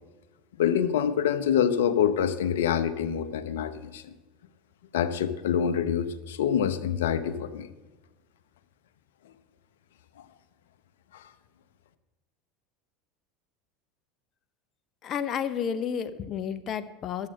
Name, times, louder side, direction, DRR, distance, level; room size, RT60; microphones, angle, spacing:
voice 1, 0.6-4.1 4.9-7.7 11.1-11.2, left 8 dB, 80° left, 12 dB, 0.8 m, -26 dB
voice 2, 15.0-17.3, left 8 dB, 45° left, 12 dB, 0.8 m, -31 dB
11.5 x 7.6 x 7.5 m, 1.2 s
hypercardioid pair, 90°, 0 cm